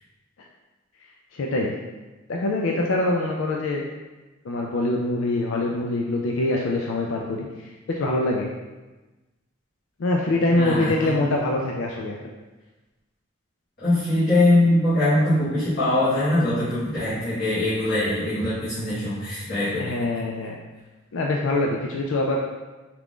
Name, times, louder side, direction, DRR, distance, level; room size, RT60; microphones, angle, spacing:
voice 1, 1.3-1.7 2.3-3.8 4.4-8.5 10.0-12.3 19.8-20.6 21.1-22.4, left 2 dB, 80° left, -1 dB, 0.4 m, -24 dB
voice 2, 10.5-11.2 13.8-19.9, left 1 dB, 50° left, -14 dB, 1.4 m, -22 dB
4.4 x 2.5 x 3.6 m, 1.2 s
head